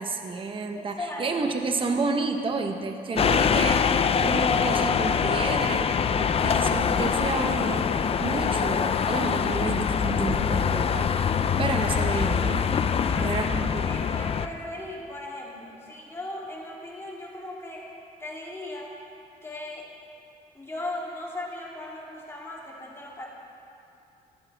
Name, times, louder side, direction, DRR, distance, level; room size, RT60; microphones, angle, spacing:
voice 1, 0.0-5.9 6.1-7.8 8.2-11.1 11.6-12.6 13.2-14.1, right 3 dB, 35° right, 5 dB, 1.1 m, -30 dB
voice 2, 0.7-1.5 13.1-17.8 18.2-18.9 19.4-19.9 20.5-23.3, left 1 dB, 15° left, -4 dB, 3.2 m, -37 dB
sound 1, 3.2-14.5, left 7 dB, 40° left, 0.6 m, -24 dB
20.0 x 15.0 x 3.6 m, 2.6 s
cardioid pair, 100°, 15 cm